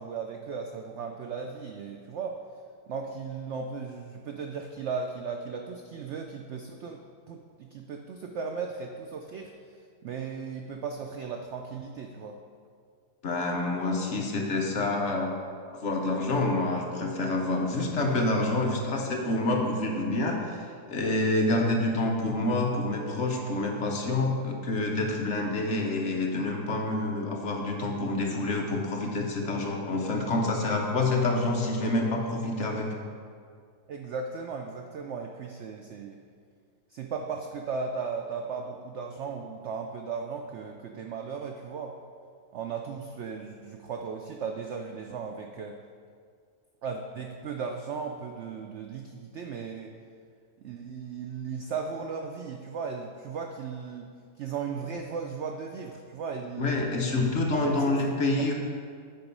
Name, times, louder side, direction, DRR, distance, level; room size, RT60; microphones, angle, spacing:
voice 1, 0.0-2.4 2.9-7.0 7.3-9.5 10.0-12.4 33.9-36.2 36.9-41.9 42.5-45.8 46.8-49.9 50.6-54.1 54.4-56.7 57.6-57.9, right 5 dB, 75° right, 3 dB, 0.6 m, -36 dB
voice 2, 13.2-15.3 15.7-32.9 56.6-58.5, left 2 dB, 50° left, 0 dB, 1.1 m, -27 dB
9.0 x 4.5 x 5.3 m, 2.2 s
omnidirectional pair, 1.7 m